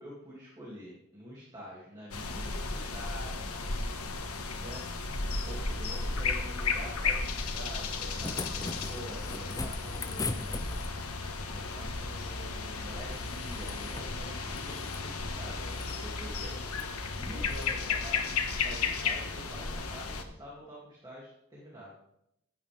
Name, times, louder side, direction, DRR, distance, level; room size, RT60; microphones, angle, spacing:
voice 1, 0.0-3.5 4.6-4.9 5.4-10.6 11.5-16.5 17.2-18.3 18.6-21.9, equal, 20° right, -5 dB, 2.4 m, -47 dB
sound 1, 2.1-20.2, left 4 dB, 85° left, 1.3 m, -34 dB
sound 2, 7.8-11.1 13.1-14.1 14.4-15.1 15.6-16.0 16.7-16.9 17.5-17.7 19.1-19.2, left 3 dB, 15° left, 0.5 m, -40 dB
16.0 x 9.5 x 3.4 m, 0.80 s
head